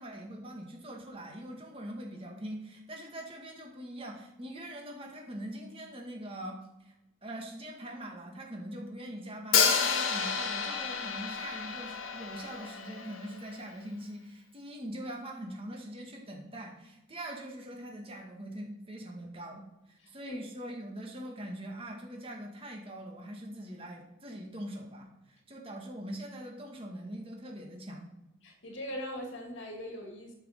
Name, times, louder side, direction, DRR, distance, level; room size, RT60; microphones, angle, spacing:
voice 1, 0.0-6.9 7.2-28.1, right 1 dB, 25° right, 0 dB, 2.0 m, -43 dB
Hi-hat, 9.5-13.5, left 6 dB, 90° left, 1.5 m, -30 dB
voice 2, 20.0-20.4 28.4-30.3, equal, 65° left, 2 dB, 2.4 m, -41 dB
9.0 x 6.6 x 6.6 m, 0.92 s
head